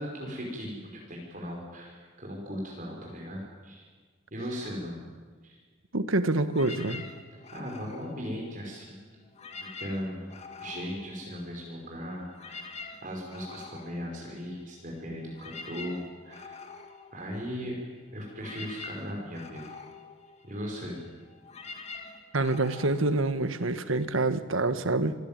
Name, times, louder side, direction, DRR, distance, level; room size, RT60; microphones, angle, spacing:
voice 1, 0.0-3.9 4.3-5.0 5.4-5.6 7.5-9.2 9.6-10.3 10.6-12.7 13.0-16.6 17.1-19.7 20.4-21.0, equal, 40° right, -1 dB, 5.8 m, -38 dB
voice 2, 5.9-7.0 22.3-25.2, right 2 dB, 80° right, 11 dB, 1.5 m, -26 dB
sound 1, 6.5-8.9 9.3-11.8 12.1-24.0, left 4 dB, 30° left, 2.3 m, -46 dB
27.0 x 19.0 x 9.2 m, 1.5 s
head